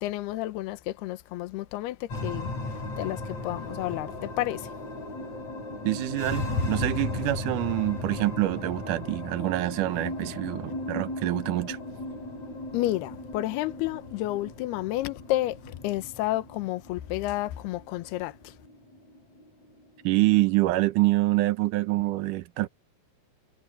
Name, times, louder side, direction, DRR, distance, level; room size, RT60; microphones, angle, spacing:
voice 1, 0.0-2.5 3.0-4.7 12.7-18.5, left 16 dB, 80° left, 2.9 m, -31 dB
sound 1, 2.1-20.6, left 2 dB, 40° left, 8.8 m, -36 dB
voice 2, 5.9-11.8 20.0-22.7, right 18 dB, 75° right, 2.0 m, -26 dB
omnidirectional pair, 4.7 m